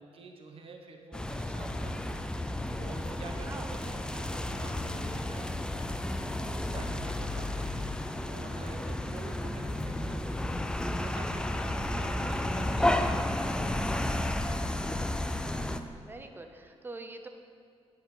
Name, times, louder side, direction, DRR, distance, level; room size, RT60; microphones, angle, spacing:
voice 1, 0.0-2.1 2.5-7.9 8.2-10.4 10.8-14.3, right 4 dB, 55° right, 3 dB, 1.3 m, -48 dB
sound 1, 1.1-15.8, left 1 dB, 5° left, 0.4 m, -32 dB
voice 2, 3.4-3.7 15.5-17.3, right 2 dB, 20° right, 6 dB, 0.8 m, -45 dB
9.1 x 7.6 x 5.6 m, 2.3 s
cardioid pair, 130°, 11 cm